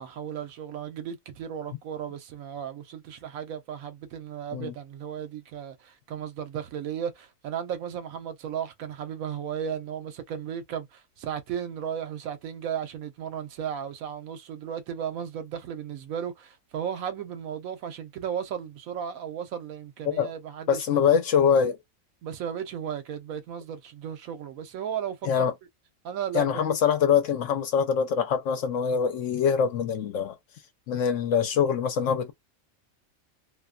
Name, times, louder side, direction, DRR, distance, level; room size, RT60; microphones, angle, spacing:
voice 1, 0.0-21.0 22.2-25.5 26.0-26.5, right 8 dB, 80° right, 1.0 m, -35 dB
voice 2, 20.7-21.8 25.2-25.5 26.3-30.3 30.9-32.3, left 7 dB, 70° left, 0.9 m, -24 dB
2.5 x 2.2 x 2.3 m
omnidirectional pair, 1.4 m